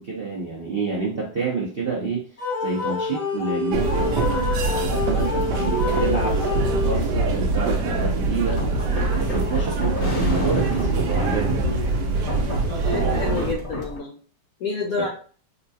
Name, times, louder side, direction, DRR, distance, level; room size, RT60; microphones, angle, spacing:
voice 1, 0.0-2.2 2.6-4.1 4.6-8.6 9.1-11.7 14.9-15.1, right 4 dB, 55° right, -5 dB, 0.6 m, -28 dB
sound 1, 2.4-7.3, left 4 dB, 60° left, 2.1 m, -28 dB
sound 2, 3.7-13.5, right 3 dB, 75° right, 1.2 m, -23 dB
sound 3, 8.5-14.0, left 1 dB, 25° left, 0.9 m, -32 dB
voice 2, 12.7-14.1 14.6-15.1, left 4 dB, 75° left, 1 dB, 0.8 m, -28 dB
4.2 x 2.3 x 2.7 m, 0.42 s
omnidirectional pair, 2.0 m